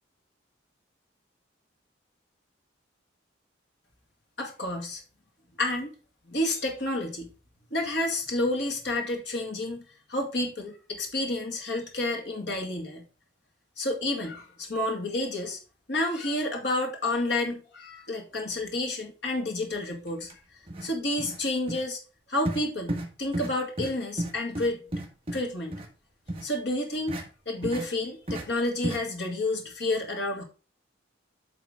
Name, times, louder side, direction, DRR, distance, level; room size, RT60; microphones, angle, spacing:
voice 1, 4.4-5.0 5.6-5.9 6.3-7.3 7.7-9.8 10.1-13.0 13.8-15.6 15.9-20.3 20.8-22.0 22.3-24.8 25.3-25.8 26.4-27.2 27.5-30.4, left 2 dB, 60° left, 1 dB, 2.0 m, -30 dB
sound 1, 20.2-20.3 20.7-20.9 21.2-21.4 21.7-21.8 22.4-22.6 22.9-23.1 23.3-23.5 23.8-23.9 24.2-25.4 25.7-25.9 26.3-26.4 27.1-27.2 27.6-27.9 28.3-28.4 28.8-29.0, right 1 dB, 30° right, 1.7 m, -32 dB
9.1 x 3.7 x 4.9 m, 0.35 s
head